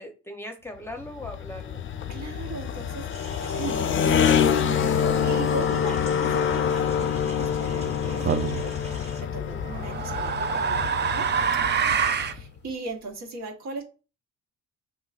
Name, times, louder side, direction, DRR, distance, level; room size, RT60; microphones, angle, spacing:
voice 1, 0.0-1.8 9.3-9.7, left 1 dB, 10° left, 3 dB, 0.7 m, -39 dB
sound 1, 0.9-12.5, left 8 dB, 40° left, 0.4 m, -26 dB
voice 2, 2.1-3.1 3.5-11.3 12.2-13.8, right 3 dB, 65° right, 2 dB, 1.3 m, -38 dB
sound 2, 3.1-9.2, right 3 dB, 20° right, 1.1 m, -45 dB
sound 3, 8.3-8.6 9.6-12.4, right 7 dB, 35° right, 0.5 m, -25 dB
5.6 x 3.1 x 2.4 m, 0.34 s
cardioid pair, 90°, 30 cm